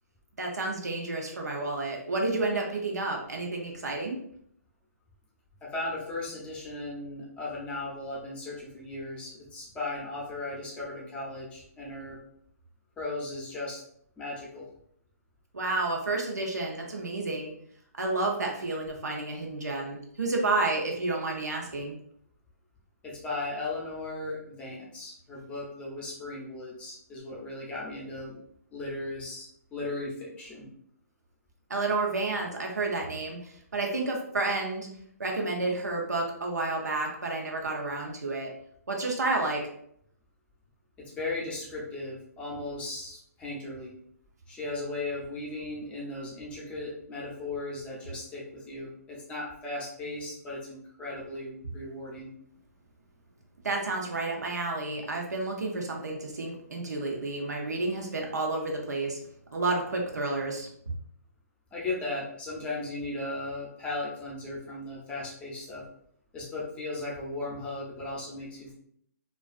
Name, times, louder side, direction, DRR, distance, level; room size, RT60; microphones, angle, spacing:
voice 1, 0.4-4.2 15.5-17.5 18.0-21.9 31.7-33.4 33.7-34.9 35.2-38.5 38.9-39.6 53.6-59.2 59.5-60.7, right 2 dB, 90° right, 0 dB, 0.7 m, -30 dB
voice 2, 5.6-12.2 13.0-13.8 14.2-14.6 23.0-28.4 28.7-30.7 41.0-43.9 44.5-52.3 61.7-65.8 66.3-68.7, left 2 dB, 15° left, -4 dB, 0.6 m, -37 dB
2.4 x 2.3 x 2.3 m, 0.68 s
hypercardioid pair, 145°, 9 cm